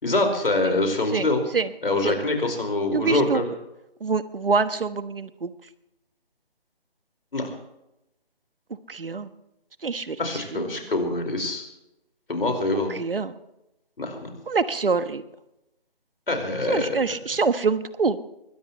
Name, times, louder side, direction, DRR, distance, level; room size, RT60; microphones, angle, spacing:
voice 1, 0.0-1.4 1.8-3.4 7.3-7.5 10.2-11.6 12.3-12.9 14.0-14.3 16.3-16.9, left 2 dB, 65° left, 4 dB, 4.8 m, -24 dB
voice 2, 2.9-3.4 4.0-5.5 8.9-9.3 9.8-10.2 10.5-10.6 12.9-13.3 14.5-15.2 16.7-18.2, right 4 dB, 65° right, 12 dB, 1.3 m, -25 dB
22.5 x 18.0 x 3.1 m, 0.87 s
figure-of-eight pair, 160°, 30 cm